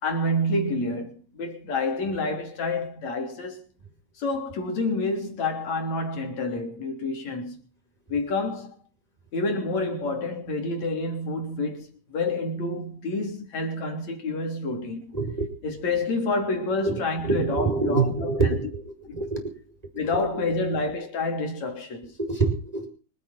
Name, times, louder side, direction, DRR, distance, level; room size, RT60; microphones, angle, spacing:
voice 1, 0.0-3.6 4.2-7.6 8.1-8.7 9.3-15.1 15.6-18.6 19.1-19.3 19.9-22.1, left 2 dB, 55° left, 4.5 m, -28 dB
voice 2, 15.1-15.5 16.8-19.5 22.2-22.9, right 3 dB, 10° right, 5.2 m, -26 dB
25.0 x 9.5 x 5.8 m
omnidirectional pair, 3.9 m